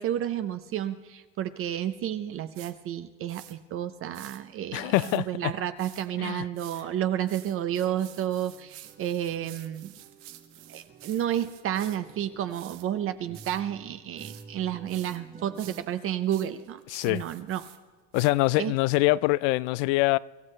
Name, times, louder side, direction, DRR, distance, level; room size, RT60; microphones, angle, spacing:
voice 1, 0.0-9.9 10.7-16.8 17.1-17.6 18.6-18.7, right 11 dB, 35° right, 0.7 m, -31 dB
sound 1, 2.5-2.7 3.3-3.6 4.1-4.4 4.9-5.2 5.8-6.1 6.6-6.8 7.3-12.0 12.5-12.8 13.3-13.6 14.2-14.4 14.9-15.2 15.5-17.8 18.1-18.3, right 13 dB, 85° right, 1.5 m, -49 dB
voice 2, 4.7-5.5 6.2-6.4 16.9-17.2 18.1-20.2, left 20 dB, 75° left, 0.5 m, -24 dB
sound 2, 6.4-6.6 6.9-16.0, right 5 dB, 20° right, 1.0 m, -51 dB
25.0 x 14.0 x 3.3 m
cardioid pair, 145°, 36 cm